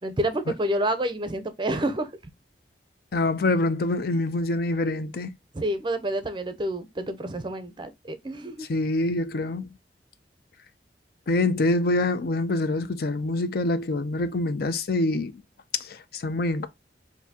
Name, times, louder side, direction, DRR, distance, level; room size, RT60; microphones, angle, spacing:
voice 1, 0.0-2.1 5.5-8.7, right 1 dB, 25° right, 0.5 m, -28 dB
voice 2, 3.1-5.3 8.6-9.7 11.3-15.4 15.8-16.7, left 2 dB, 60° left, 0.5 m, -25 dB
4.2 x 2.7 x 2.7 m
head